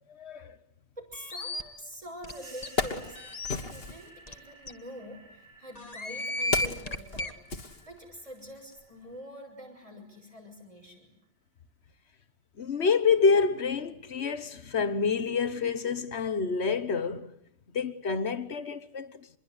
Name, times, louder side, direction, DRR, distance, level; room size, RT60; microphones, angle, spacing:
voice 1, 0.1-0.5 12.6-17.3 17.7-19.4, left 5 dB, 85° left, 1.6 m, -28 dB
voice 2, 1.0-7.4 7.9-11.1, equal, 30° right, 6.5 m, -46 dB
sound 1, 1.1-1.6 2.2-2.3 2.6-2.7 3.2-3.6 4.3-4.4 4.7-4.8 5.8-7.3, left 2 dB, 35° left, 1.7 m, -33 dB
Wood, 1.9-2.0 2.5-4.1 5.1-8.4 8.7-8.9, left 3 dB, 65° left, 1.9 m, -35 dB
sound 2, 2.3-10.6, right 3 dB, 75° right, 4.5 m, -55 dB
26.5 x 22.5 x 9.6 m
omnidirectional pair, 1.1 m